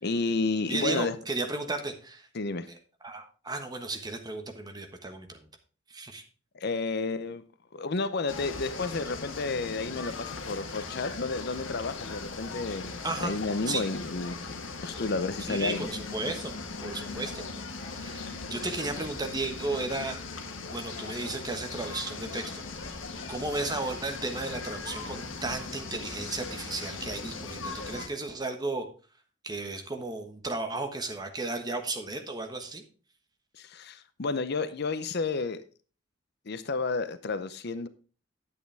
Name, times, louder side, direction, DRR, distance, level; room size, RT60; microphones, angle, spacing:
voice 1, 0.0-1.2 2.3-2.7 6.5-7.4 7.7-13.0 13.2-14.4 14.8-15.9 33.5-35.6 36.5-37.9, left 3 dB, 55° left, 0.7 m, -31 dB
voice 2, 0.7-2.3 2.7-2.8 3.0-5.5 5.9-6.2 13.0-13.3 13.7-13.8 15.5-16.5 16.8-17.4 17.8-20.2 20.7-23.0 23.3-28.9 29.4-32.8, right 2 dB, 20° right, 1.3 m, -34 dB
sound 1, 8.3-28.1, left 4 dB, 75° left, 1.5 m, -39 dB
9.8 x 8.3 x 3.4 m
head